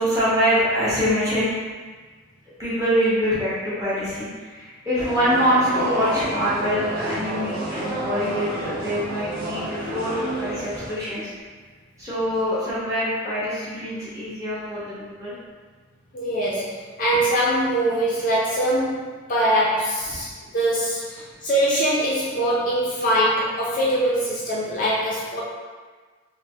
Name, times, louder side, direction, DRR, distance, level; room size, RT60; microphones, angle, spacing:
voice 1, 0.0-1.5 2.6-11.3 12.0-15.3 20.1-20.2, equal, 15° right, -10 dB, 0.8 m, -24 dB
sound 1, 5.0-10.9, right 1 dB, 45° right, 0.6 m, -29 dB
voice 2, 16.1-20.3 20.5-21.0 21.4-25.4, right 1 dB, 35° left, -6 dB, 0.4 m, -22 dB
3.3 x 2.1 x 2.7 m, 1.4 s
head